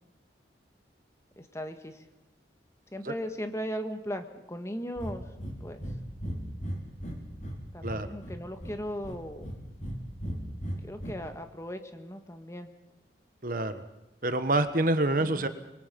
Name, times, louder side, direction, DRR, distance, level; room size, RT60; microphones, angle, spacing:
voice 1, 1.4-2.1 2.9-5.2 5.6-6.0 7.7-9.5 10.3-10.4 10.8-12.7 15.2-15.5, equal, 15° left, 7 dB, 1.6 m, -38 dB
Breathing, 5.0-5.1 5.4-5.6 5.8-6.0 6.2-7.6 7.8-8.7 9.0-10.0 10.2-11.1, equal, 45° left, 4.4 m, -36 dB
voice 2, 13.4-13.8 14.2-15.5, right 2 dB, 50° right, 10 dB, 1.4 m, -27 dB
26.0 x 22.5 x 5.4 m, 0.99 s
head